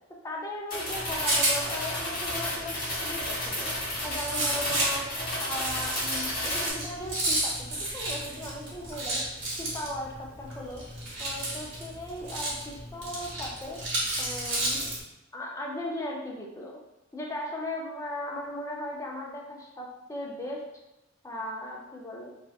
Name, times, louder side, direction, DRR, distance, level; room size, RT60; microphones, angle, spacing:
voice 1, 0.2-3.7 4.0-5.1 5.4-9.3 9.6-10.9 11.2-13.8 14.2-14.9 15.3-16.8 17.1-20.7 21.2-22.3, left 1 dB, 15° left, -2 dB, 0.4 m, -37 dB
sound 1, 0.7-6.7, left 1 dB, 45° left, 0.9 m, -32 dB
Rattle, 0.9-15.0, right 1 dB, 65° right, 1.0 m, -33 dB
2.8 x 2.2 x 2.3 m, 0.93 s
head